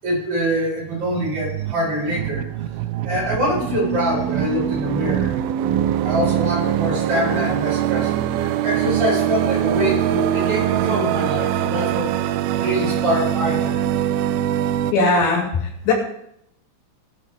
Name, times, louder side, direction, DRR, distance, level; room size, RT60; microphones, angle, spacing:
voice 1, 0.0-2.4 3.0-5.4 6.0-12.1 12.6-14.0, equal, 30° right, -6 dB, 8.4 m, -24 dB
sound 1, 0.9-14.9, right 11 dB, 90° right, 2.1 m, -23 dB
voice 2, 14.9-15.5 15.9-16.0, left 3 dB, 80° left, 0 dB, 5.3 m, -17 dB
18.0 x 13.0 x 3.7 m, 0.72 s
omnidirectional pair, 5.0 m